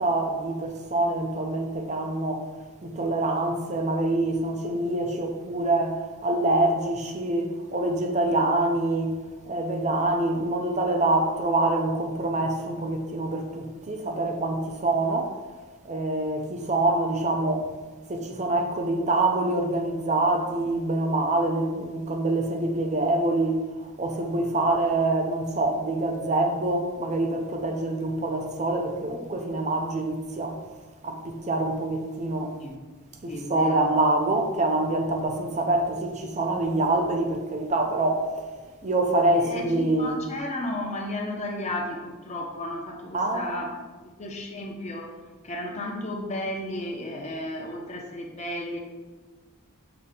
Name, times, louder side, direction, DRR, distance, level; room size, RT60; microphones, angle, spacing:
voice 1, 0.0-2.5 2.8-9.2 9.5-15.3 15.8-17.7 18.1-30.6 31.0-32.6 33.2-38.5 38.8-40.2 43.1-43.5, right 2 dB, 30° right, 0.6 m, -25 dB
voice 2, 33.2-33.9 39.3-43.8 44.2-45.2 45.4-48.8, left 1 dB, 30° left, 0.8 m, -33 dB
6.9 x 2.8 x 5.1 m
head